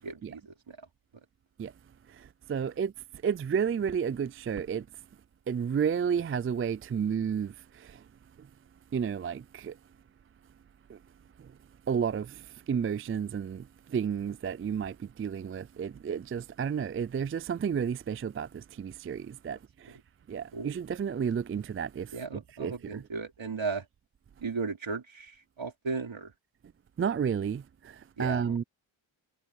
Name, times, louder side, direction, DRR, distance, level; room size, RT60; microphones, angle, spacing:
voice 1, 0.0-0.9 20.5-20.7 22.1-23.9 24.4-26.3 28.2-28.6, right 4 dB, 70° right, 3.7 m, -36 dB
voice 2, 2.5-2.9 3.2-4.8 5.5-7.5 8.9-9.7 11.9-12.3 12.7-13.6 13.9-14.9 15.2-18.5 18.8-19.6 20.3-22.1 22.6-23.0 27.0-27.6 28.2-28.6, right 7 dB, 30° right, 0.4 m, -31 dB
cardioid pair, 50°, 47 cm